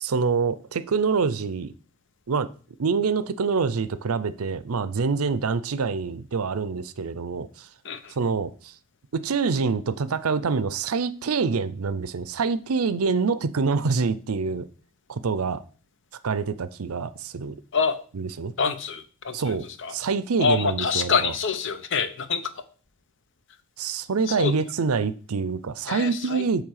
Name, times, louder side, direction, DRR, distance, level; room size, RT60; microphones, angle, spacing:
voice 1, 0.0-1.7 2.3-2.5 2.8-7.7 8.2-8.7 9.1-14.7 15.1-15.6 16.2-17.6 18.1-18.5 19.3-21.3 23.8-26.6, right 5 dB, 85° right, 15 dB, 0.6 m, -26 dB
voice 2, 7.8-8.2 17.7-18.0 18.6-19.9 20.4-22.5 24.3-24.5 25.9-26.4, left 5 dB, 60° left, 10 dB, 0.8 m, -26 dB
8.7 x 3.4 x 6.5 m, 0.40 s
head